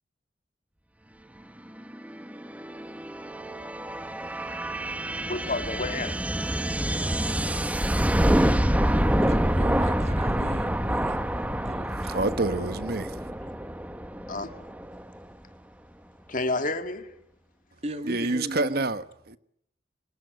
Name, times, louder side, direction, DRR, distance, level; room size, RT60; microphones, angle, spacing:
sound 1, 1.8-15.2, right 1 dB, 10° right, 1.1 m, -27 dB
voice 1, 5.3-6.2 6.6-6.8 7.7-7.8 14.3-14.6 16.3-17.1, left 2 dB, 45° left, 2.1 m, -31 dB
voice 2, 9.2-12.6 17.8-18.9, right 1 dB, 35° right, 2.3 m, -37 dB
voice 3, 12.1-13.1 18.1-19.4, right 2 dB, 55° right, 1.3 m, -27 dB
26.0 x 21.5 x 9.4 m
head